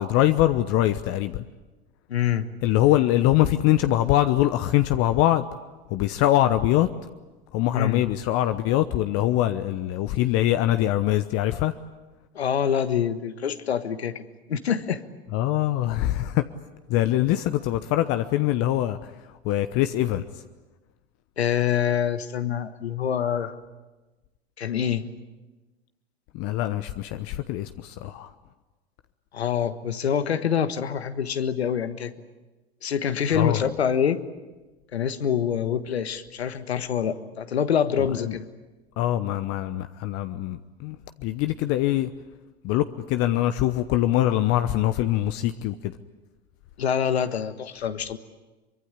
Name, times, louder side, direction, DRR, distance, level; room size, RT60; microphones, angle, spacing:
voice 1, 0.0-1.4 2.6-5.5 5.9-6.9 7.5-11.7 15.3-16.5 16.9-19.0 19.4-20.2 26.3-28.3 33.3-33.6 38.2-38.4 39.0-42.1 42.6-45.9, left 14 dB, 50° left, 10 dB, 1.0 m, -23 dB
voice 2, 2.1-2.5 7.7-8.0 12.3-14.2 14.5-15.0 21.4-23.5 24.6-25.1 29.3-32.1 32.8-34.2 34.9-38.5 46.8-48.2, left 8 dB, 85° left, 11 dB, 1.5 m, -25 dB
24.0 x 23.0 x 9.8 m, 1.2 s
hypercardioid pair, 90°, 31 cm